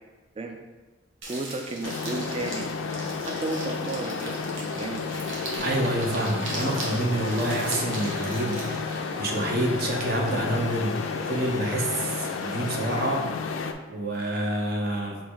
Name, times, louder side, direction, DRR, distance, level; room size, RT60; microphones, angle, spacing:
sound 1, 1.2-9.0, right 2 dB, 75° right, 1.0 m, -39 dB
voice 1, 1.3-2.7 3.3-5.0, right 2 dB, 30° right, 4 dB, 0.3 m, -33 dB
sound 2, 1.8-13.7, left 5 dB, 90° left, 0.3 m, -32 dB
sound 3, 5.6-13.2, right 1 dB, 5° right, 0.9 m, -44 dB
voice 2, 5.6-11.0 11.3-13.2 13.9-15.2, right 1 dB, 50° right, -1 dB, 0.7 m, -27 dB
4.7 x 2.6 x 3.6 m, 1.3 s
head